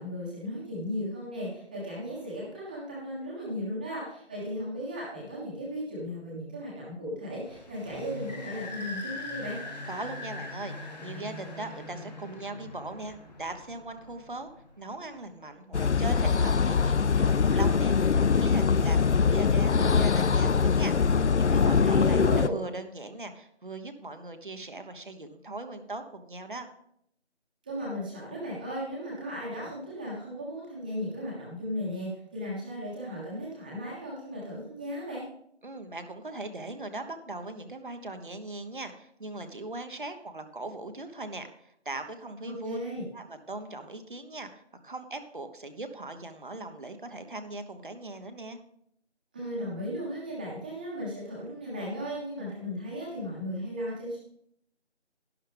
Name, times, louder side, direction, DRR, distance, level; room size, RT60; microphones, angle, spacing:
voice 1, 0.0-9.6 21.8-22.6 27.6-35.2 42.4-43.0 49.3-54.2, equal, 10° right, -6 dB, 1.5 m, -36 dB
sound 1, 7.4-14.8, left 2 dB, 40° left, 2.2 m, -42 dB
voice 2, 9.8-14.5 14.8-26.7 35.6-42.8 43.1-48.6, right 2 dB, 45° right, 7 dB, 1.3 m, -39 dB
sound 2, 15.7-22.5, left 5 dB, 80° left, 0.6 m, -23 dB
12.0 x 11.5 x 3.5 m, 0.71 s
figure-of-eight pair, 170°, 34 cm